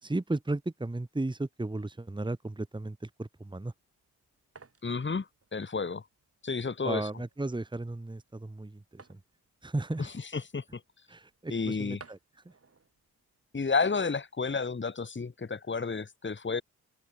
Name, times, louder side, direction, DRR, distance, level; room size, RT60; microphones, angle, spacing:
voice 1, 0.0-3.7 6.8-9.2 9.6-10.1 11.1-12.2 12.5-12.6, right 2 dB, 10° right, 1.8 m, -35 dB
sound 1, 3.7-14.1, right 4 dB, 35° right, 7.4 m, -60 dB
voice 2, 4.8-5.3 5.5-6.0 6.4-7.1 10.0-10.8 11.5-12.0 13.5-16.6, left 4 dB, 30° left, 2.4 m, -31 dB
open air
supercardioid pair, 55°, 39 cm